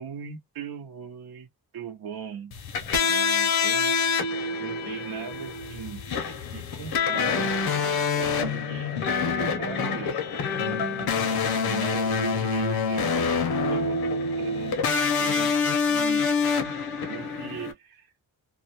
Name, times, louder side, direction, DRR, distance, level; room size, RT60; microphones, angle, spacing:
voice 1, 0.0-1.5 1.7-4.2 4.6-7.5 8.2-10.2 10.6-11.0 11.6-14.1 14.4-14.8 15.2-16.3 16.6-16.7 17.0-18.1, right 7 dB, 70° right, 0.7 m, -39 dB
sound 1, 2.5-17.7, left 5 dB, 70° left, 0.7 m, -26 dB
2.3 x 2.1 x 2.7 m
wide cardioid pair, 160°, 38 cm